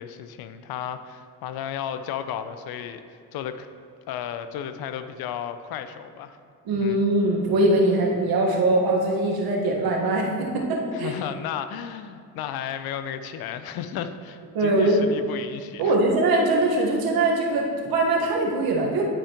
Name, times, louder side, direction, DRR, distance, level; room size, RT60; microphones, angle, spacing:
voice 1, 0.0-3.0 3.3-3.7 4.1-6.4 6.7-7.0 10.9-15.9, left 9 dB, 80° left, 10 dB, 0.6 m, -33 dB
voice 2, 6.6-11.1 14.5-15.0 15.8-19.0, right 2 dB, 75° right, -1 dB, 1.4 m, -22 dB
10.5 x 5.0 x 2.9 m, 2.3 s
supercardioid pair, 70°, 36 cm